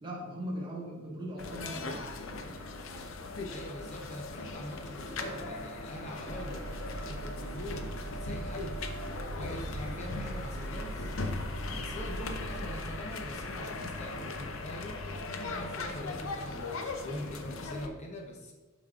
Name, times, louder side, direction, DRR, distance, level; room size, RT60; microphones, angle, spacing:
voice 1, 0.0-2.1, equal, 25° right, -4 dB, 1.4 m, -39 dB
sound 1, 1.4-17.9, left 3 dB, 80° left, 0.6 m, -39 dB
voice 2, 3.5-6.6 7.1-8.8 9.3-11.1 11.7-15.0 15.6-18.5, left 1 dB, 35° left, 1 dB, 0.6 m, -43 dB
sound 2, 6.3-13.0, right 2 dB, 75° right, 0.5 m, -41 dB
8.1 x 5.1 x 2.4 m, 1.3 s
head